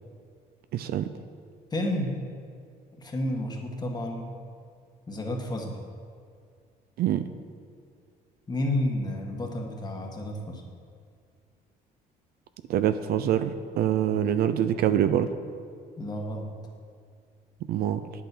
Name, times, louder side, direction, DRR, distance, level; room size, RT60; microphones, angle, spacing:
voice 1, 0.7-1.1 7.0-7.3 12.7-15.3 17.7-18.0, right 10 dB, 65° right, 11 dB, 0.6 m, -25 dB
voice 2, 1.7-2.2 3.0-4.3 5.1-5.8 8.5-10.6 16.0-16.5, left 1 dB, 25° left, 1 dB, 1.7 m, -31 dB
9.3 x 8.5 x 6.2 m, 2.2 s
cardioid pair, 110°, 17 cm